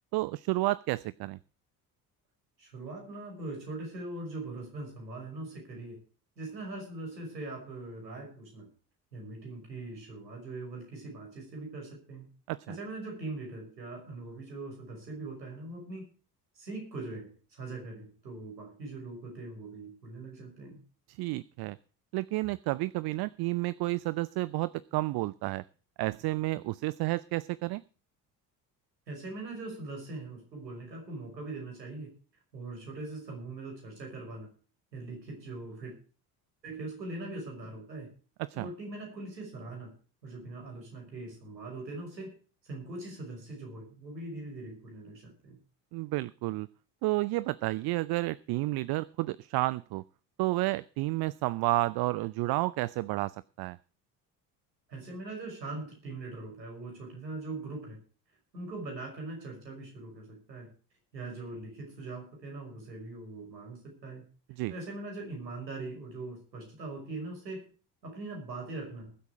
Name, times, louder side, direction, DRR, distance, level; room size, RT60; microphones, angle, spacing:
voice 1, 0.1-1.4 12.5-12.8 21.1-21.8 22.1-25.6 26.0-27.8 38.4-38.7 45.9-46.7 47.0-50.0 50.4-53.8 64.6-64.7, right 19 dB, 50° right, 20 dB, 0.6 m, -31 dB
voice 2, 2.6-6.0 6.4-8.7 9.1-12.3 12.7-16.1 16.5-20.8 29.1-32.1 32.5-34.5 34.9-35.9 36.6-38.1 38.5-39.9 40.2-42.3 42.6-45.6 54.9-58.0 58.5-60.7 61.1-64.2 64.7-67.7 68.0-69.1, right 2 dB, 85° right, 1 dB, 5.7 m, -41 dB
20.5 x 8.3 x 4.8 m, 0.36 s
figure-of-eight pair, 55°, 49 cm